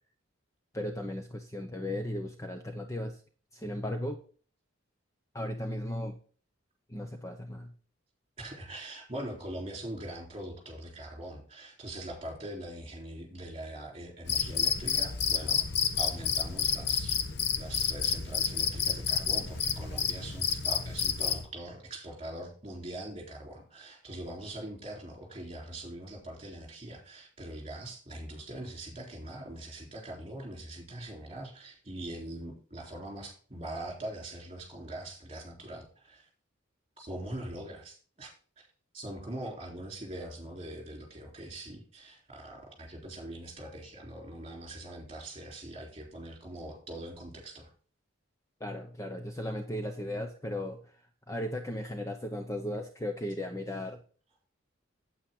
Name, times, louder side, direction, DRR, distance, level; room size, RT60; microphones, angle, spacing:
voice 1, 0.7-3.2 3.5-4.2 5.3-6.2 6.9-7.7 48.6-54.0, left 1 dB, 15° left, 5 dB, 0.7 m, -36 dB
voice 2, 8.4-15.7 16.0-17.2 17.6-36.3 37.0-38.7 38.9-47.7, right 1 dB, 25° right, 1 dB, 3.6 m, -42 dB
Cricket, 14.3-21.5, left 7 dB, 55° left, 1.0 m, -30 dB
8.8 x 8.6 x 3.7 m, 0.40 s
head